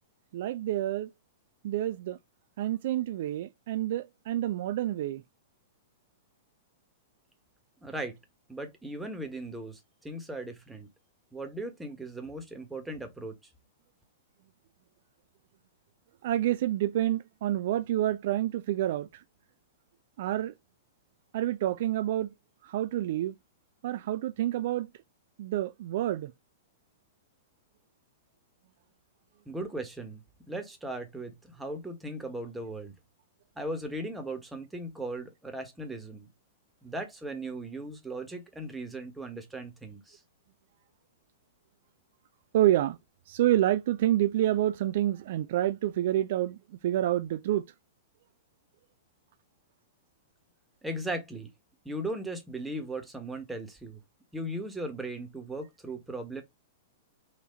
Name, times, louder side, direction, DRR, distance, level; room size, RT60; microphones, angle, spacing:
voice 1, 0.3-1.1 1.6-2.2 2.6-5.2 16.2-19.2 20.2-20.5 21.3-22.3 22.6-23.4 23.8-24.9 25.4-26.3 42.5-43.0 43.3-47.7, right 13 dB, 60° right, 0.3 m, -28 dB
voice 2, 7.8-8.2 8.5-10.9 11.3-13.3 29.5-30.2 30.5-32.9 33.6-36.3 36.8-40.2 50.8-51.5 51.8-54.0 54.3-56.4, right 1 dB, 5° right, 1.3 m, -38 dB
4.3 x 2.7 x 3.7 m
hypercardioid pair, 110°, 0 cm